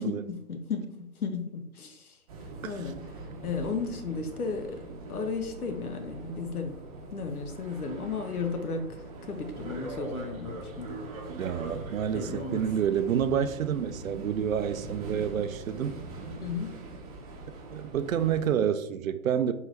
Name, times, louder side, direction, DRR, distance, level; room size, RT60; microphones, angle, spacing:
voice 1, 0.0-2.2 2.6-3.0 3.4-6.8 7.1-11.1 12.1-12.7 16.4-16.8, left 4 dB, 80° left, 6 dB, 0.9 m, -34 dB
sound 1, 2.3-18.5, right 2 dB, 25° right, 0.7 m, -42 dB
voice 2, 11.3-16.0 17.7-19.5, right 8 dB, 65° right, 11 dB, 0.5 m, -29 dB
4.6 x 2.7 x 3.3 m, 0.85 s
figure-of-eight pair, 135°, 44 cm